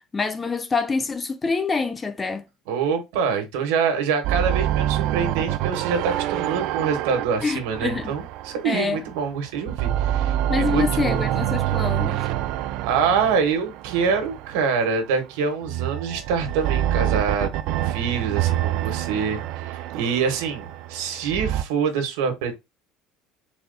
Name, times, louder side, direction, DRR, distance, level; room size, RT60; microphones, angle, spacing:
voice 1, 0.1-2.5 7.4-8.1 8.6-9.0 10.5-12.2, left 4 dB, 15° left, 0.4 m, -26 dB
voice 2, 2.7-11.2 12.8-17.5 17.8-22.6, right 6 dB, 90° right, 1.3 m, -25 dB
sound 1, 4.2-9.2 9.6-14.9 15.6-21.6, right 12 dB, 60° right, 0.3 m, -26 dB
4.1 x 2.3 x 3.9 m
cardioid pair, 145°, 0 cm